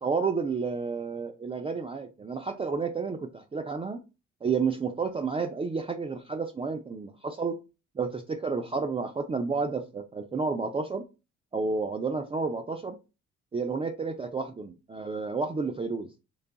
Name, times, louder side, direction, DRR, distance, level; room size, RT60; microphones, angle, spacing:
voice 1, 0.0-4.0 4.4-7.6 8.0-11.0 11.5-13.0 13.5-16.1, right 4 dB, 20° right, 4 dB, 0.4 m, -31 dB
3.3 x 2.3 x 3.8 m, 0.28 s
cardioid pair, 90°, 30 cm